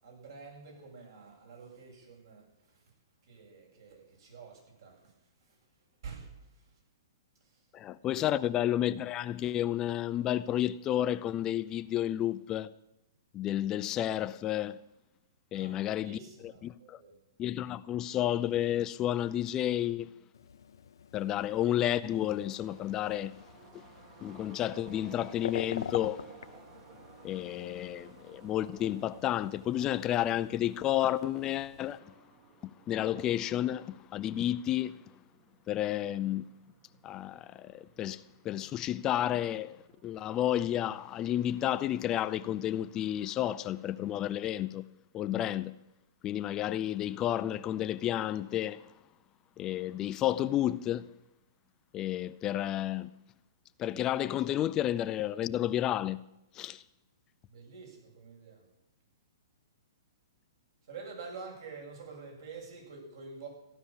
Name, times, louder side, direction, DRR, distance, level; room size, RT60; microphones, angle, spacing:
voice 1, 0.0-2.8 3.2-5.1 5.4-5.6 6.0-6.7 7.4-7.6 8.0-8.3 15.5-17.2 57.5-58.6 60.8-63.5, right 4 dB, 70° right, 7.6 m, -48 dB
voice 2, 7.7-12.7 13.3-14.8 15.5-17.0 17.4-20.1 21.1-23.4 23.7-23.8 24.2-26.3 27.2-32.1 32.9-35.0 35.7-36.5 37.0-39.8 40.0-44.9 45.1-45.8 46.2-48.9 49.6-51.1 51.9-53.1 53.8-56.2 56.5-56.8, left 12 dB, 25° left, 0.5 m, -31 dB
sound 1, 20.3-32.0, left 8 dB, 75° left, 0.7 m, -46 dB
sound 2, 21.9-40.6, right 7 dB, 40° right, 1.7 m, -58 dB
15.5 x 11.5 x 7.3 m
hypercardioid pair, 140°, 2 cm